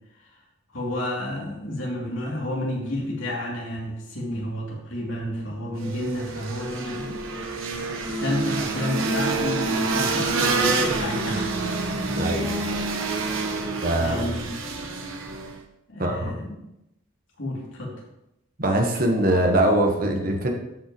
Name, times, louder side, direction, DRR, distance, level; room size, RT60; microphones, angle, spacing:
voice 1, 0.7-7.2 8.2-11.8 12.1-12.2 14.0-14.5 15.9-16.6 17.4-17.9, left 1 dB, 75° left, -4 dB, 2.7 m, -30 dB
sound 1, 5.8-15.6, right 3 dB, 90° right, 1.2 m, -27 dB
voice 2, 12.1-12.5 13.8-14.3 16.0-16.3 18.6-20.5, right 1 dB, 45° right, 2 dB, 1.2 m, -22 dB
13.0 x 5.3 x 3.1 m, 0.85 s
head